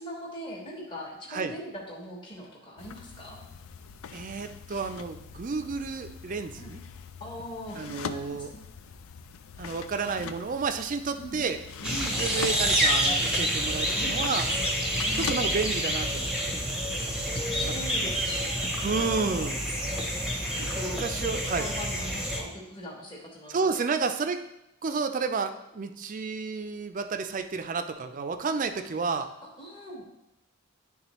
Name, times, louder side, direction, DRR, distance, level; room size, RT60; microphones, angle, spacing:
voice 1, 0.0-3.4 6.6-6.7 7.2-8.7 11.2-11.4 11.8-12.2 14.0-14.4 14.9-15.3 17.3-19.5 20.6-23.8 29.1-30.0, equal, 20° left, -4 dB, 1.0 m, -41 dB
sound 1, 2.8-15.4, left 6 dB, 85° left, 0.4 m, -42 dB
voice 2, 4.1-6.8 7.8-8.5 9.6-11.6 12.2-14.4 15.2-16.6 18.0-18.2 18.8-19.6 21.0-21.7 23.5-24.4 24.8-29.3, right 4 dB, 40° right, 8 dB, 0.4 m, -31 dB
sound 2, 11.8-22.4, equal, 5° right, 0.7 m, -28 dB
10.5 x 3.6 x 3.0 m, 0.89 s
head